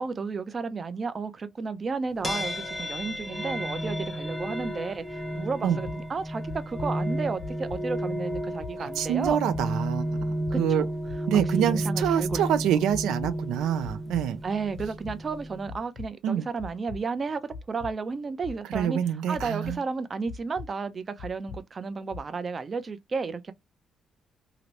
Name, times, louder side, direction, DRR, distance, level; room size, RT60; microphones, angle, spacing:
voice 1, 0.0-9.4 10.5-10.9 11.3-12.5 14.4-19.0 19.3-23.5, right 4 dB, 40° right, 0.5 m, -33 dB
sound 1, 2.2-15.8, equal, 15° left, 0.6 m, -32 dB
sound 2, 5.8-6.0 6.5-6.9 7.4-7.8 8.3-8.7 9.2-9.6 10.1-10.5 11.1-11.5 12.0-12.4 12.9-13.3 13.8-14.2 14.7-15.1 15.7-16.1 16.6-17.0 17.5-17.9 18.4-18.8 19.3-19.7 20.3-20.7 21.2-21.6 22.1-22.2, left 5 dB, 85° left, 0.6 m, -40 dB
voice 2, 8.8-10.9 11.3-14.4 16.2-16.4 18.7-19.8, right 10 dB, 90° right, 0.4 m, -26 dB
2.8 x 2.6 x 3.1 m
cardioid pair, 90°, 0 cm